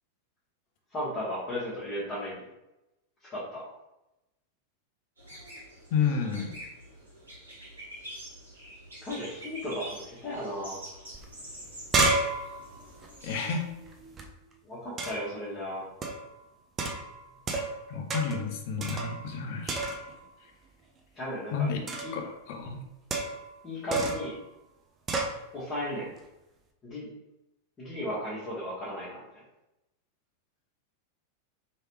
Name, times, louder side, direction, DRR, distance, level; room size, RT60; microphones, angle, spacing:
voice 1, 0.9-2.4 3.2-3.6 9.0-10.8 14.6-15.8 21.1-21.7 22.0-22.1 23.6-24.3 25.5-26.2 26.8-27.1 27.8-29.3, left 1 dB, 25° left, -9 dB, 1.3 m, -35 dB
sound 1, 5.2-13.5, right 1 dB, 75° right, 1.4 m, -46 dB
voice 2, 5.9-6.6 13.2-13.7 17.9-19.8 21.5-21.8 22.1-22.8, left 6 dB, 50° left, 4 dB, 0.6 m, -30 dB
sound 2, 11.1-11.2 11.5-14.2 15.0-15.4 16.0-16.3 16.8-17.8 18.1-18.5 18.8-19.4 19.7-20.3 21.9-22.2 23.1-23.5 23.9-24.3 25.1-25.4, right 3 dB, 25° right, 0.5 m, -31 dB
3.2 x 3.2 x 3.0 m, 0.94 s
figure-of-eight pair, 90°, 0 cm